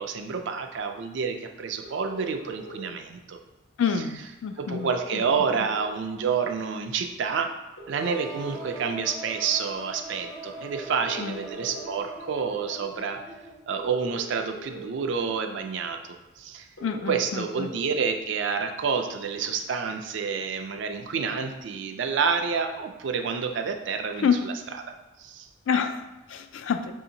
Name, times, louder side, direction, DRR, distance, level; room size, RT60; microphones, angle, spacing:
voice 1, 0.0-3.4 4.6-7.6 7.9-13.2 13.7-16.7 17.1-24.5 25.2-25.5, right 6 dB, 60° right, 5 dB, 0.3 m, -29 dB
sound 1, 1.8-2.8 4.8-5.8 7.8-8.8 10.8-11.8 13.8-14.8 16.8-17.8, equal, 90° left, 1.0 m, -42 dB
voice 2, 3.8-5.2 11.2-11.4 16.8-17.7 24.2-24.4 25.7-26.9, left 6 dB, 65° left, 8 dB, 0.3 m, -28 dB
sound 2, 8.0-13.8, right 2 dB, ahead, 0.4 m, -42 dB
4.8 x 2.8 x 2.7 m, 1.1 s
head